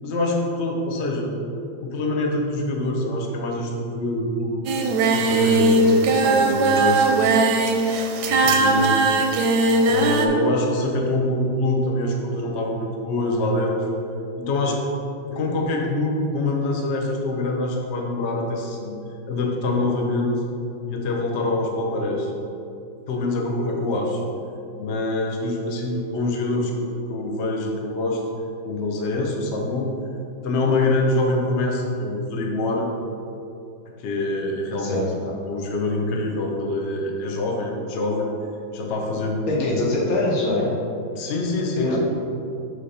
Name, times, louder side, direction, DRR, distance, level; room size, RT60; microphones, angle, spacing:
voice 1, 0.0-1.3 1.8-4.6 5.1-7.4 8.3-9.2 9.9-13.8 14.4-14.8 15.3-19.0 19.3-20.3 20.9-22.3 23.1-24.2 24.7-28.3 28.6-29.9 30.4-32.9 34.0-35.1 35.5-38.3 38.7-39.5 41.2-42.0, left 2 dB, 55° left, 1 dB, 0.7 m, -25 dB
Singing, 4.7-10.3, right 3 dB, 70° right, 1.0 m, -19 dB
voice 2, 34.8-35.3 39.5-40.7 41.7-42.0, left 2 dB, 85° left, -4 dB, 2.1 m, -23 dB
6.4 x 3.7 x 5.5 m, 2.6 s
omnidirectional pair, 2.2 m